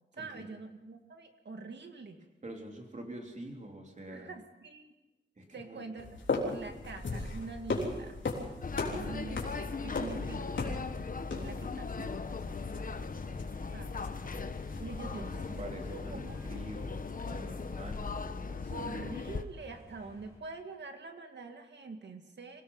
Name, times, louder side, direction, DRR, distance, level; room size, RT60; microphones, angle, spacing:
voice 1, 0.2-2.3 4.1-4.9 5.5-8.2 8.9-10.7 11.3-12.7 13.7-14.0 14.8-15.4 15.7-16.5 18.7-22.6, right 3 dB, 65° right, 6 dB, 2.1 m, -45 dB
voice 2, 2.4-4.3 5.4-5.8 14.7-19.0, right 1 dB, 40° right, 1 dB, 3.5 m, -46 dB
sound 1, 6.0-18.1, left 3 dB, 80° left, 3.7 m, -39 dB
sound 2, 8.6-19.4, left 4 dB, 45° left, 1.1 m, -38 dB
sound 3, 11.2-20.4, equal, 15° right, 7.5 m, -57 dB
25.5 x 18.0 x 5.6 m, 1.0 s
wide cardioid pair, 120°, 19 cm